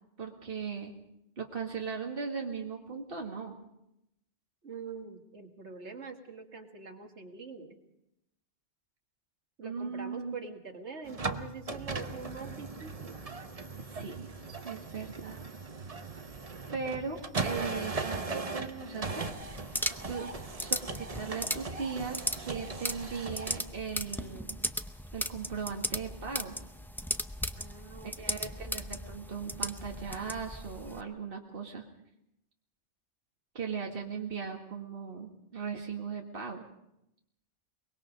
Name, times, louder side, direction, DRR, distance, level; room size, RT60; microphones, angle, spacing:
voice 1, 0.2-0.9 1.4-3.6 9.6-10.3 13.9-14.3 14.6-15.4 16.7-19.3 20.1-20.2 20.6-24.6 25.1-26.6 28.0-31.8 33.5-36.6, right 5 dB, 55° right, 1 dB, 2.1 m, -38 dB
voice 2, 4.6-7.8 9.6-13.2 20.2-20.3 27.6-28.4, right 4 dB, 80° right, 4 dB, 2.3 m, -44 dB
sound 1, 11.0-23.6, right 3 dB, 35° right, 1.0 m, -39 dB
sound 2, 19.3-31.0, equal, 5° left, 0.5 m, -37 dB
23.5 x 21.5 x 5.2 m, 0.84 s
omnidirectional pair, 1.2 m